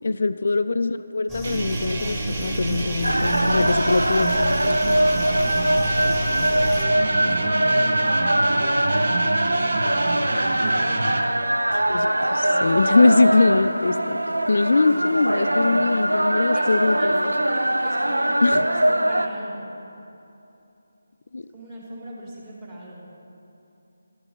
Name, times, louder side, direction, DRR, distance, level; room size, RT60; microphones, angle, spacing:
voice 1, 0.0-5.0 11.7-14.2 14.5-17.3 18.4-18.7 21.3-21.5, left 3 dB, 55° left, 10 dB, 0.3 m, -22 dB
sound 1, 1.3-6.8, equal, 10° right, 1.7 m, -32 dB
sound 2, 1.4-11.2, right 2 dB, 50° right, 0.9 m, -29 dB
sound 3, 3.0-19.3, right 1 dB, 80° right, 0.5 m, -22 dB
voice 2, 5.7-10.4 12.4-13.7 14.8-15.9 16.5-19.7 21.5-23.1, right 1 dB, 25° right, -5 dB, 2.5 m, -38 dB
11.5 x 7.0 x 7.1 m, 2.8 s
figure-of-eight pair, 155°, 0 cm